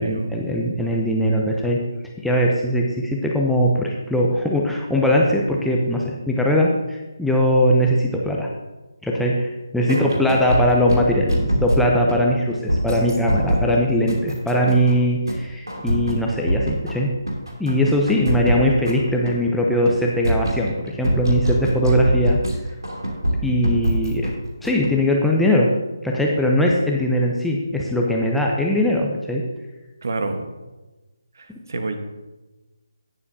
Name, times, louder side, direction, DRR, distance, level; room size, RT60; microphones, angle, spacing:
voice 1, 0.0-1.8 2.2-8.5 9.0-17.1 17.6-22.4 23.4-24.3 24.6-25.7 26.0-29.4, equal, ahead, -2 dB, 0.7 m, -20 dB
sound 1, 9.9-12.2 12.7-13.7 14.1-15.0 15.3-15.4 15.7-16.9 17.3-19.3 19.7-19.9 20.2-22.5 22.8-24.3 24.6-24.9, equal, 85° right, 2.9 m, -23 dB
voice 2, 30.0-30.5 31.4-32.0, right 3 dB, 55° right, 6 dB, 1.3 m, -27 dB
17.5 x 7.2 x 2.8 m, 1.1 s
figure-of-eight pair, 150°, 2 cm